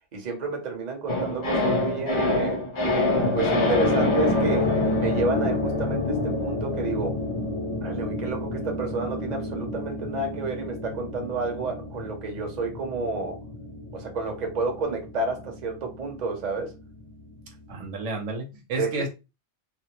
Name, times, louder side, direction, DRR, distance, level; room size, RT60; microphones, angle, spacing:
voice 1, 0.1-2.6 3.3-7.2 7.8-13.4 13.9-16.7 18.8-19.0, right 3 dB, 40° right, 0.8 m, -30 dB
sound 1, 1.1-17.4 17.7-17.8, left 2 dB, 50° left, 0.3 m, -27 dB
voice 2, 17.7-19.1, right 2 dB, 85° right, 1.1 m, -31 dB
2.6 x 2.0 x 2.8 m
omnidirectional pair, 1.2 m